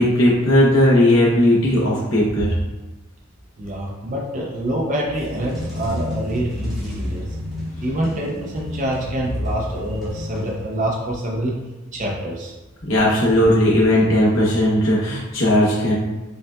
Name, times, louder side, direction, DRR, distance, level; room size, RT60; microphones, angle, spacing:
voice 1, 0.0-2.6 12.9-15.9, left 1 dB, 60° left, -6 dB, 0.9 m, -17 dB
voice 2, 3.6-7.3 7.8-11.5 11.9-12.5, right 1 dB, 35° right, -2 dB, 0.5 m, -26 dB
sound 1, 5.0-11.0, left 1 dB, ahead, 0.9 m, -30 dB
5.3 x 2.3 x 2.3 m, 1.1 s
head